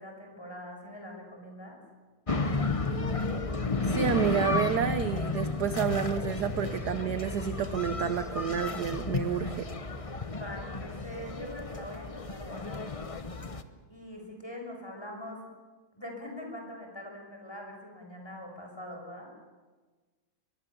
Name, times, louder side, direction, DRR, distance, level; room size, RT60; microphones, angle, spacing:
voice 1, 0.0-1.8 10.3-13.0 13.9-15.4 15.9-19.3, left 1 dB, 10° left, 1 dB, 5.9 m, -43 dB
sound 1, 2.3-13.6, left 3 dB, 45° left, 0.4 m, -32 dB
voice 2, 3.9-9.7, right 8 dB, 60° right, 10 dB, 1.3 m, -30 dB
23.0 x 22.0 x 7.1 m, 1.3 s
omnidirectional pair, 2.3 m